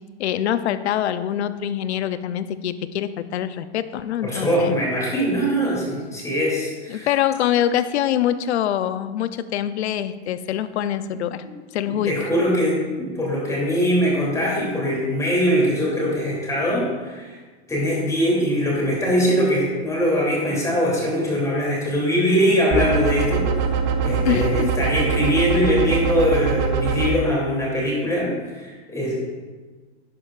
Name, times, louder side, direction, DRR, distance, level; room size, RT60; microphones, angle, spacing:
voice 1, 0.2-4.8 6.9-11.4 11.7-12.1 24.2-24.7, left 10 dB, 75° left, 12 dB, 0.7 m, -24 dB
voice 2, 4.2-7.1 11.9-17.4 17.7-23.6 24.0-29.1, equal, 10° left, -4 dB, 2.9 m, -22 dB
sound 1, 22.7-27.1, right 6 dB, 40° right, 1.0 m, -23 dB
11.5 x 9.8 x 2.5 m, 1.3 s
hypercardioid pair, 135°, 33 cm